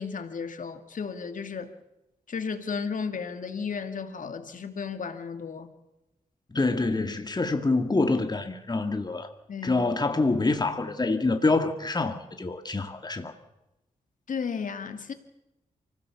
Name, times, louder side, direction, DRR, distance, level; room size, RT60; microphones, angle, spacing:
voice 1, 0.0-1.7 2.3-5.7 9.5-9.8 14.3-15.1, left 5 dB, 60° left, 2.2 m, -34 dB
voice 2, 6.5-9.3 9.6-13.3, left 3 dB, 30° left, 2.0 m, -26 dB
24.5 x 16.5 x 7.1 m
supercardioid pair, 45°, 15 cm